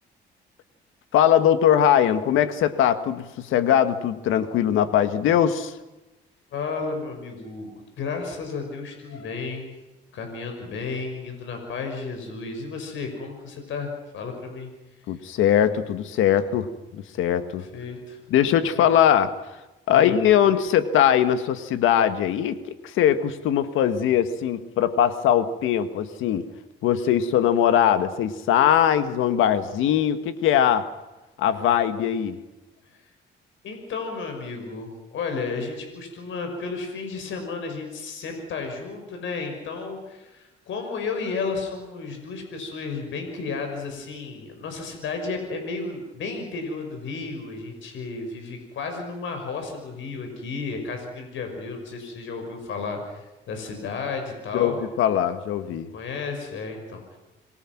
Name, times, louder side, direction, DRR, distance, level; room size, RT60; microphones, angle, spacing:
voice 1, 1.1-5.8 15.1-17.7 18.3-19.4 19.9-26.5 26.8-30.9 31.4-32.4 54.5-55.9, left 9 dB, 90° left, 11 dB, 1.7 m, -21 dB
voice 2, 6.5-9.7 10.1-14.7 17.7-18.2 18.7-18.9 20.0-20.3 33.6-54.8 55.9-57.2, left 4 dB, 75° left, 4 dB, 5.8 m, -33 dB
28.0 x 22.5 x 6.1 m, 1.0 s
cardioid pair, 90°, 20 cm